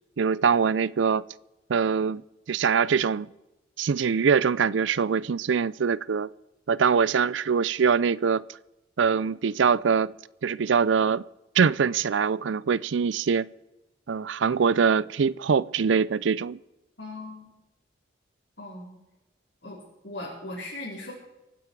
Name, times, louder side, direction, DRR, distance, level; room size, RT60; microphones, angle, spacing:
voice 1, 0.2-1.2 1.7-2.2 2.5-3.3 3.8-6.3 6.7-8.4 9.0-10.1 10.4-11.2 11.5-13.5 14.1-16.6, right 6 dB, 70° right, 0.4 m, -23 dB
voice 2, 17.0-17.5 18.6-18.9 19.6-19.8 20.0-21.1, left 2 dB, 60° left, 4.3 m, -38 dB
25.0 x 9.4 x 4.7 m
head